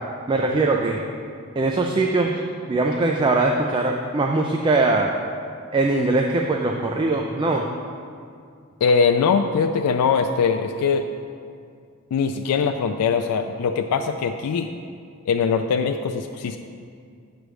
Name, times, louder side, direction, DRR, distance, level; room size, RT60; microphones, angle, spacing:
voice 1, 0.3-1.0 1.6-2.4 2.7-5.1 5.7-7.6, right 2 dB, 20° right, 0 dB, 0.3 m, -21 dB
voice 2, 8.8-11.0 12.1-14.7 15.3-16.6, left 5 dB, 85° left, 5 dB, 0.3 m, -21 dB
8.0 x 3.3 x 6.2 m, 2.3 s
head